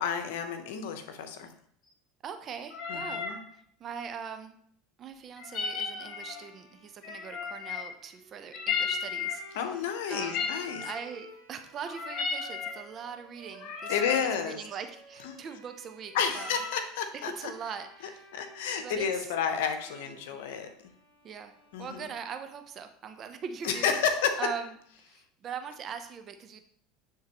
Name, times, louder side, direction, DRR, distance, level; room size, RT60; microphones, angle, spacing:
voice 1, 0.0-1.5 2.9-3.4 9.5-10.8 13.9-14.6 15.2-15.3 16.1-17.5 18.3-20.7 21.7-22.1 23.6-24.4, left 7 dB, 80° left, 6 dB, 0.9 m, -31 dB
voice 2, 2.2-3.2 3.5-4.6 5.0-9.7 10.1-16.5 17.1-18.3 18.8-19.3 20.3-20.4 21.2-23.9 24.4-24.7 25.0-26.6, right 7 dB, 40° right, 8 dB, 0.7 m, -41 dB
sound 1, 2.7-3.4 5.4-6.4 7.0-8.0 8.5-9.5 10.1-11.1 11.8-12.8 13.5-14.3 16.2-16.9, left 5 dB, 50° left, 1.2 m, -34 dB
Bowed string instrument, 5.9-22.8, right 3 dB, 90° right, 2.9 m, -56 dB
9.5 x 3.7 x 3.0 m, 0.66 s
supercardioid pair, 105°, 0 cm